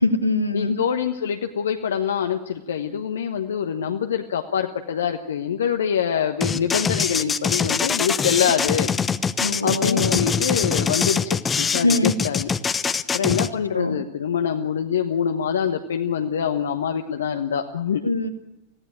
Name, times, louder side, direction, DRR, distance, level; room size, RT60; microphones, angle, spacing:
voice 1, 0.0-0.8 9.4-10.2 11.8-12.1 13.3-13.4 13.7-14.0 18.0-18.3, left 2 dB, 85° left, 5 dB, 2.1 m, -22 dB
voice 2, 0.5-8.9 9.6-12.5 13.1-18.0, left 8 dB, 65° left, 6 dB, 1.2 m, -25 dB
sound 1, 6.4-13.5, left 6 dB, 20° left, 0.9 m, -23 dB
25.0 x 16.5 x 9.0 m, 0.92 s
figure-of-eight pair, 90°, 0 cm